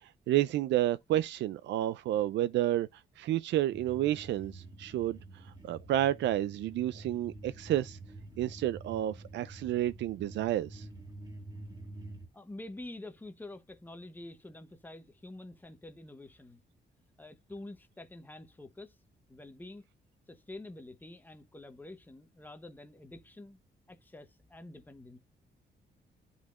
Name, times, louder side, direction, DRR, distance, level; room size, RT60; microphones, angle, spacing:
voice 1, 0.0-8.0 8.4-10.9, right 13 dB, 85° right, 0.4 m, -31 dB
sound 1, 3.7-12.3, right 2 dB, 25° right, 1.9 m, -48 dB
voice 2, 12.3-16.6 17.2-19.0 19.3-19.8 20.3-23.6 23.9-25.2, left 2 dB, 10° left, 0.8 m, -47 dB
11.5 x 4.1 x 2.4 m
wide cardioid pair, 175°, 18 cm